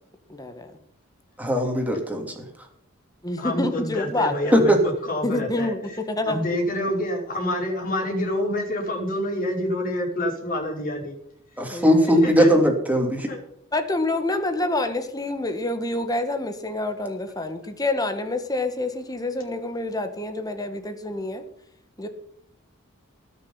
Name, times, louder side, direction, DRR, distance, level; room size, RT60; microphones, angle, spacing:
voice 1, 0.3-0.7 3.2-4.5 5.2-6.4 11.7-12.3 13.7-21.4 22.0-22.1, left 2 dB, 20° left, 8 dB, 1.5 m, -27 dB
voice 2, 1.4-2.4 4.5-4.8 11.6-13.3, equal, 5° right, 2 dB, 2.9 m, -19 dB
voice 3, 3.4-6.0 6.2-11.2 12.2-12.5 13.3-13.4, left 1 dB, 40° left, -1 dB, 4.7 m, -27 dB
19.5 x 6.9 x 5.7 m, 0.74 s
head